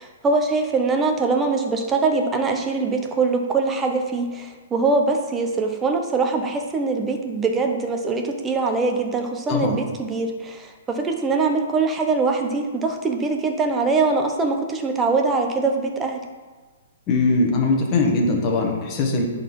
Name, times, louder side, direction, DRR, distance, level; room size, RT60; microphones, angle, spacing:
voice 1, 0.0-16.2, right 3 dB, 15° right, 4 dB, 0.8 m, -23 dB
voice 2, 17.1-19.3, left 3 dB, 25° left, 0 dB, 1.6 m, -21 dB
10.5 x 4.2 x 4.7 m, 1.3 s
hypercardioid pair, 155°, 0 cm